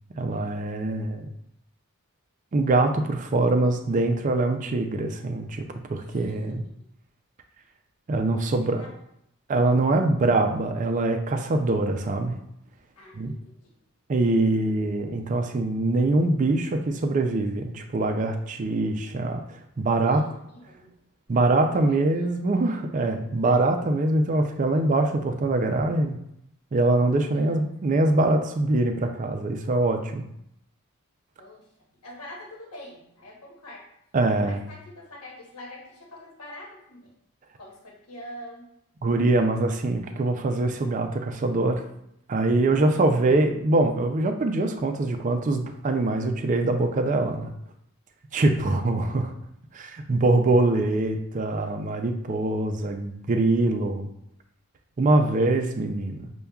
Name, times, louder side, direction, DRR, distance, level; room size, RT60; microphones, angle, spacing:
voice 1, 0.1-1.3 2.5-6.6 8.1-8.9 9.5-12.4 13.1-13.3 14.1-20.2 21.3-26.2 26.7-30.3 34.1-34.6 39.0-41.8 42.3-47.5 48.3-49.3 49.7-54.1 55.0-56.3, right 2 dB, 35° right, 5 dB, 0.4 m, -23 dB
voice 2, 13.0-13.6 20.1-20.2 20.7-20.9 22.2-22.3 27.3-27.6 31.4-31.7 32.0-33.9 34.4-37.1 37.6-38.6 48.3-48.4, left 1 dB, 85° left, -1 dB, 1.0 m, -44 dB
6.7 x 2.2 x 2.3 m, 0.77 s
head